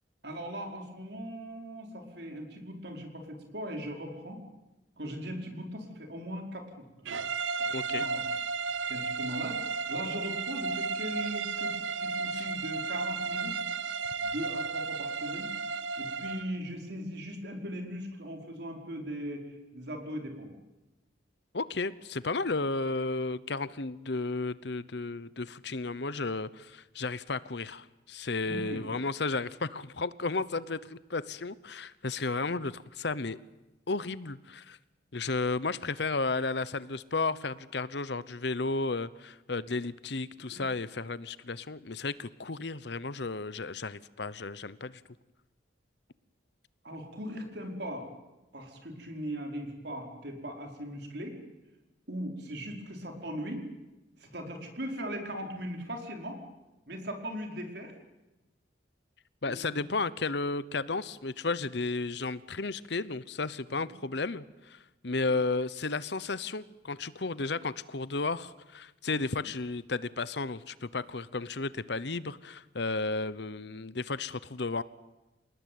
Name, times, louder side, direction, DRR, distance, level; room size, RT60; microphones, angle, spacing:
voice 1, 0.2-4.4 5.0-7.1 7.6-8.2 8.9-13.5 14.2-15.5 16.0-20.5 28.4-28.8 40.5-40.6 46.8-48.1 48.5-51.4 52.1-53.6 54.2-56.4 56.9-57.9 59.4-59.9 65.1-65.3, equal, 60° right, 3 dB, 4.9 m, -39 dB
sound 1, 7.0-16.5, right 4 dB, 75° right, 0.9 m, -33 dB
voice 2, 7.7-8.1 12.3-12.5 21.5-33.4 33.9-34.8 35.1-45.0 59.4-74.8, left 3 dB, 60° left, 17 dB, 0.9 m, -33 dB
28.0 x 19.5 x 9.4 m, 1.0 s
head